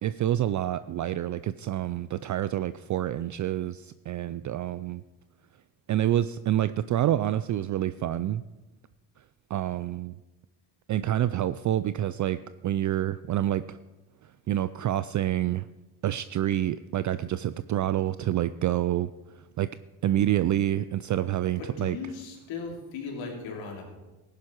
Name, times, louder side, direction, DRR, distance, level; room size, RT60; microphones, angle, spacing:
voice 1, 0.0-5.0 5.9-8.4 9.5-10.2 10.9-13.8 14.5-15.7 16.0-19.7 20.0-22.0, right 12 dB, 45° right, 14 dB, 0.4 m, -27 dB
voice 2, 21.6-24.0, left 4 dB, 80° left, 0 dB, 3.1 m, -37 dB
14.5 x 11.0 x 4.5 m, 1.1 s
supercardioid pair, 75°, 46 cm